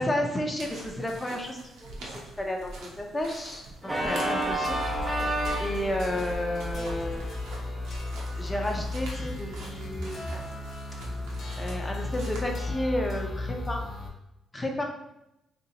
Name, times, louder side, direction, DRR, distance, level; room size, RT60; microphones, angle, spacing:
voice 1, 0.0-4.8 5.6-7.4 8.4-10.3 11.6-13.8 14.5-14.8, left 1 dB, 20° left, 1 dB, 0.8 m, -32 dB
sound 1, 0.6-12.4, right 2 dB, 90° right, 0.9 m, -45 dB
Organ, 3.8-8.7, right 1 dB, 15° right, 0.7 m, -32 dB
sound 2, 4.6-14.1, left 2 dB, 55° left, 1.1 m, -35 dB
3.3 x 2.9 x 4.1 m, 0.88 s
cardioid pair, 90°, 0 cm